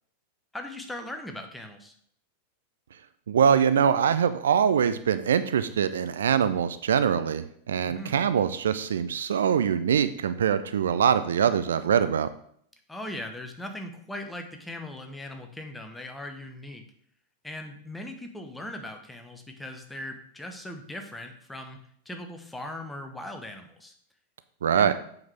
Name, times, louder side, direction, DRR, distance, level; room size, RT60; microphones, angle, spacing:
voice 1, 0.5-1.9 7.9-8.2 12.9-16.8 17.4-23.9 24.8-24.9, left 1 dB, 5° left, 4 dB, 1.1 m, -39 dB
voice 2, 3.3-12.3 24.6-24.9, right 8 dB, 65° right, 12 dB, 0.4 m, -23 dB
7.6 x 5.8 x 3.4 m, 0.65 s
figure-of-eight pair, 90°, 0 cm